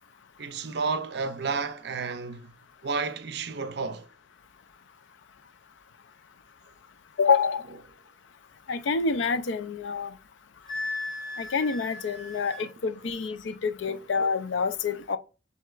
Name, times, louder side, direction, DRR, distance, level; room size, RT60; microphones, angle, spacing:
voice 1, 0.4-2.5 2.8-4.1 13.9-14.0, right 4 dB, 60° right, 0.5 m, -31 dB
voice 2, 7.2-7.6 8.7-10.1 11.4-15.2, left 5 dB, 75° left, 0.5 m, -27 dB
Wind instrument woodwind instrument, 10.7-12.7, left 2 dB, ahead, 2.4 m, -36 dB
7.4 x 2.8 x 2.4 m
head